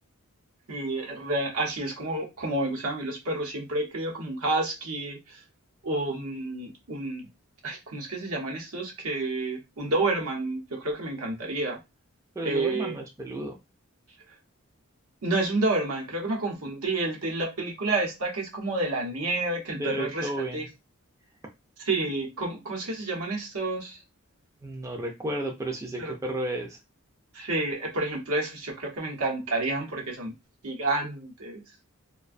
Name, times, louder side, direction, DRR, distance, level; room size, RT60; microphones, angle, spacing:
voice 1, 0.7-5.4 5.8-7.3 7.6-11.8 12.4-13.0 15.2-20.6 21.9-24.0 26.0-26.1 27.3-30.3 30.6-31.6, right 2 dB, 80° right, 0.8 m, -29 dB
voice 2, 12.4-13.5 19.7-20.7 24.6-26.8, right 1 dB, 15° right, 0.3 m, -32 dB
2.4 x 2.2 x 2.4 m
head